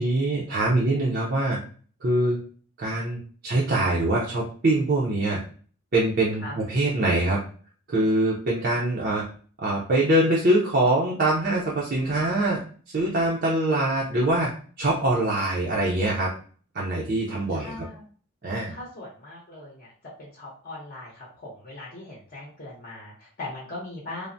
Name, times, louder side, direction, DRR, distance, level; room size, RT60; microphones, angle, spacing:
voice 1, 0.0-1.6 2.0-2.4 2.8-5.4 5.9-7.4 7.9-9.2 9.6-12.6 12.9-14.5 14.8-16.3 16.7-17.8 18.4-18.8, right 1 dB, 45° right, -4 dB, 0.5 m, -23 dB
voice 2, 17.5-18.0 18.7-19.9 20.2-24.3, left 2 dB, 40° left, -4 dB, 0.7 m, -40 dB
3.2 x 2.0 x 2.5 m, 0.43 s
head